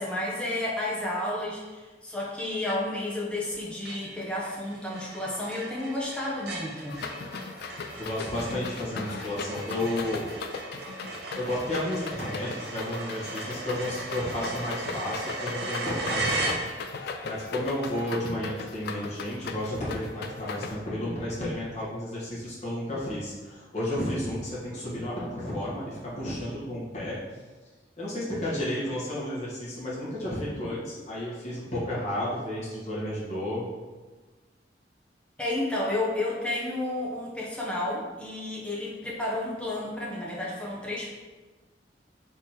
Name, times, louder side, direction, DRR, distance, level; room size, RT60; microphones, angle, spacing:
voice 1, 0.0-7.0 35.4-41.1, left 1 dB, 5° left, -5 dB, 0.8 m, -31 dB
sound 1, 2.7-3.1 3.5-3.6 3.8-17.1, right 2 dB, 65° right, 0.7 m, -37 dB
sound 2, 6.9-20.8, left 4 dB, 60° left, 0.4 m, -38 dB
voice 2, 8.0-10.2 11.3-16.5 17.0-27.2 28.0-33.7, left 1 dB, 40° left, -8 dB, 1.4 m, -32 dB
3.6 x 3.1 x 4.2 m, 1.3 s
head